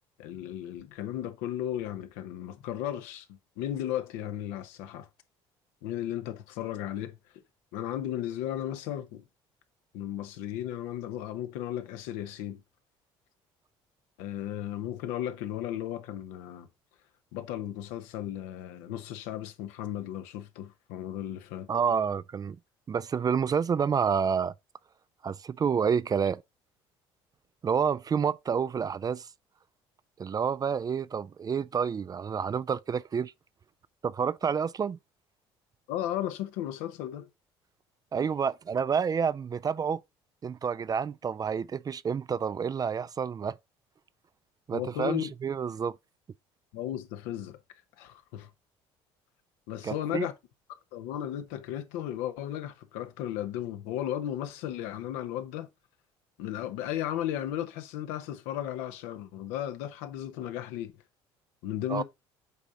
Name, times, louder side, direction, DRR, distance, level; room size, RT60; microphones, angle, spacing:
voice 1, 0.2-5.1 5.8-7.2 7.7-9.2 9.9-12.6 14.2-16.7 17.3-21.7 35.9-37.3 44.7-45.3 46.7-47.6 48.0-48.5 49.7-50.3 50.7-55.7 56.4-61.0 61.6-62.0, left 11 dB, 80° left, 0.9 m, -35 dB
voice 2, 21.7-22.6 22.9-24.5 25.2-26.4 27.6-29.3 30.2-33.3 34.0-35.0 38.1-40.0 40.4-43.6 44.7-46.0 49.8-50.3 61.9-62.0, right 6 dB, 30° right, 0.4 m, -29 dB
8.2 x 3.6 x 3.9 m
hypercardioid pair, 70°, 12 cm